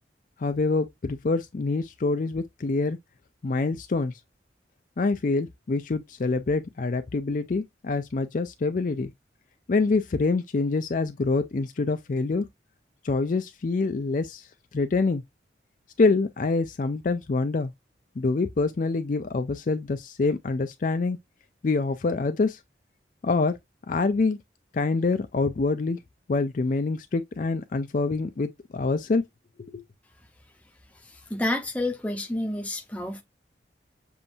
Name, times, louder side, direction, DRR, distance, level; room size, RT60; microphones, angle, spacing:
voice 1, 0.4-3.0 3.4-4.1 5.0-9.1 9.7-12.5 13.0-14.5 14.7-15.2 16.0-17.7 18.2-21.2 21.6-22.6 23.2-23.6 23.9-24.4 24.7-26.0 26.3-29.2 29.7-29.8, left 3 dB, 45° left, 0.4 m, -26 dB
voice 2, 31.0-33.2, left 1 dB, 10° left, 0.7 m, -29 dB
7.0 x 2.6 x 2.6 m
head